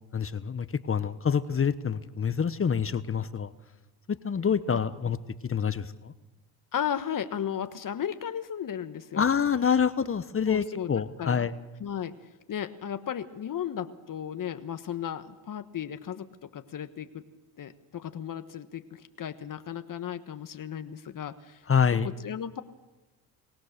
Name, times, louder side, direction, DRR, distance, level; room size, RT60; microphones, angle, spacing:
voice 1, 0.1-3.5 4.1-5.2 5.4-6.1 9.2-11.5 21.7-22.1, left 7 dB, 30° left, 13 dB, 1.1 m, -26 dB
voice 2, 6.7-9.3 10.5-11.5 11.8-17.2 17.6-21.7 21.9-22.6, left 9 dB, 45° left, 10 dB, 1.3 m, -35 dB
24.5 x 19.0 x 6.7 m, 1.1 s
hypercardioid pair, 65°, 47 cm